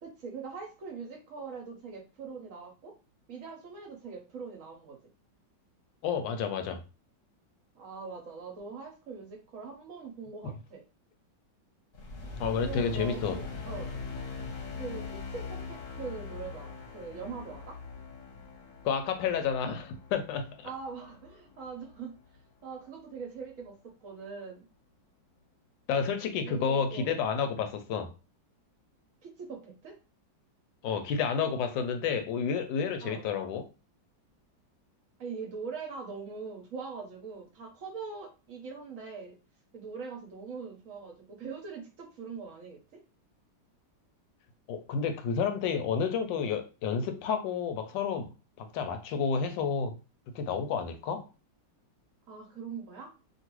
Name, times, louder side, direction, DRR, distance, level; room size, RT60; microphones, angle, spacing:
voice 1, 0.0-2.9 3.3-5.0 7.7-10.8 12.6-13.9 14.7-17.8 20.6-22.2 22.6-24.6 26.4-27.1 29.2-30.0 33.0-33.3 35.2-39.4 39.7-43.0 52.3-53.2, right 5 dB, 60° right, 0.9 m, -42 dB
voice 2, 6.0-6.8 12.4-13.4 18.8-20.7 25.9-28.1 30.8-33.7 44.7-48.3 48.6-50.0 50.3-51.3, left 6 dB, 80° left, 1.2 m, -30 dB
sound 1, 11.9-22.4, left 4 dB, 55° left, 1.0 m, -42 dB
2.9 x 2.5 x 3.0 m
omnidirectional pair, 2.0 m